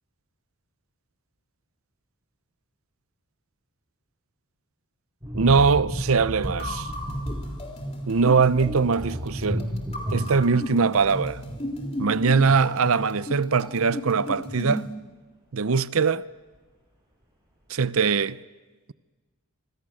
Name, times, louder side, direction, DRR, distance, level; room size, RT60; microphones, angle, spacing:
sound 1, 5.2-12.6 12.9-13.1, equal, 15° right, 6.8 m, -34 dB
voice 1, 5.3-6.9 8.1-9.7 10.1-11.4 12.0-14.9 15.5-16.2 17.7-18.4, right 5 dB, 65° right, 0.6 m, -22 dB
sound 2, 6.4-14.9, equal, 25° left, 3.5 m, -35 dB
25.5 x 25.5 x 6.5 m
head